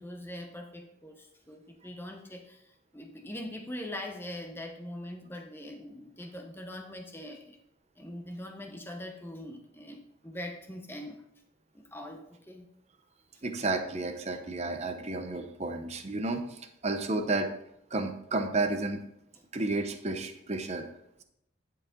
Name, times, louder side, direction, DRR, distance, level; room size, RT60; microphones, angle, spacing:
voice 1, 0.0-7.6 8.0-11.2 11.7-12.6, left 1 dB, 10° left, 3 dB, 0.8 m, -42 dB
voice 2, 13.4-17.5 17.9-19.0 19.5-20.9, right 2 dB, 30° right, 6 dB, 0.7 m, -32 dB
10.5 x 4.8 x 3.7 m, 0.78 s
head